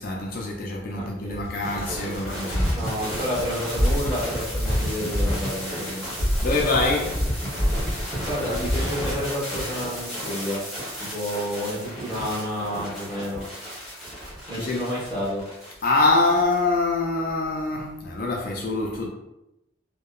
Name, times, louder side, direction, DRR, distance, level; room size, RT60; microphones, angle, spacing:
voice 1, 0.0-2.7 6.4-7.2 14.5-14.8 15.8-19.1, left 2 dB, 45° left, 0.3 m, -24 dB
voice 2, 0.9-1.4 2.7-6.1 7.6-10.6 11.0-13.4 14.5-15.5, equal, 20° right, 1.1 m, -30 dB
sound 1, 1.3-16.6, equal, ahead, 1.0 m, -29 dB
2.7 x 2.1 x 2.3 m
head